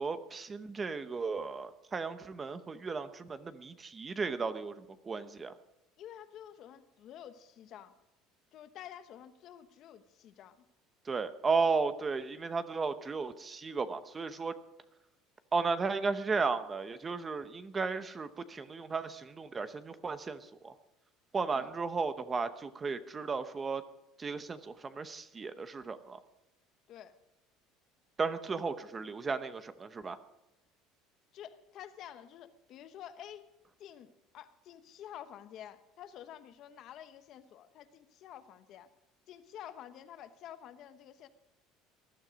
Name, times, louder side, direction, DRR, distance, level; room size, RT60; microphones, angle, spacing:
voice 1, 0.0-5.5 11.0-14.5 15.5-20.7 21.3-23.8 24.2-26.2 28.2-30.2, right 4 dB, 20° right, 12 dB, 0.8 m, -34 dB
voice 2, 6.0-7.9 8.5-10.6 21.5-21.7 26.9-27.2 31.3-38.9 39.3-41.3, left 10 dB, 45° left, 11 dB, 1.0 m, -50 dB
19.5 x 12.0 x 5.2 m, 0.93 s
cardioid pair, 150°, 0 cm